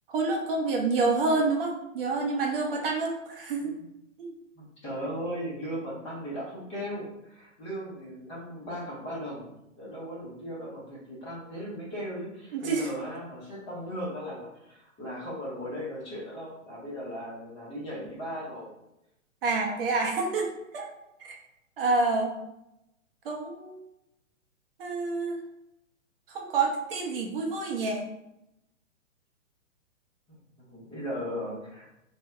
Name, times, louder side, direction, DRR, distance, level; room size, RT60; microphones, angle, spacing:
voice 1, 0.1-3.7 4.2-4.3 12.5-12.9 19.4-20.9 21.2-21.4 21.8-22.3 23.2-23.8 24.8-25.4 26.3-28.1, right 3 dB, 45° right, 1 dB, 0.6 m, -28 dB
voice 2, 4.5-18.7 30.3-31.9, equal, 15° left, -7 dB, 0.6 m, -37 dB
2.7 x 2.1 x 3.3 m, 0.87 s
hypercardioid pair, 135°, 40 cm